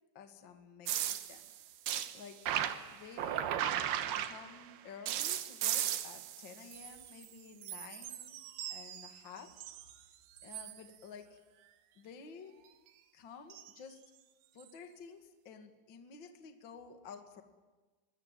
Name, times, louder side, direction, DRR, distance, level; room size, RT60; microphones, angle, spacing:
voice 1, 0.1-1.5 2.1-2.5 2.9-8.4 8.7-9.6 10.4-11.4 11.9-12.5 13.1-14.0 14.5-17.4, left 5 dB, 50° left, 5 dB, 1.4 m, -52 dB
sound 1, 0.9-4.7 5.1-7.3 7.6-9.9 10.4-10.8 13.5-13.7 14.6-14.7, right 11 dB, 70° right, 2.7 m, -37 dB
25.5 x 20.5 x 9.1 m, 1.3 s
omnidirectional pair, 5.7 m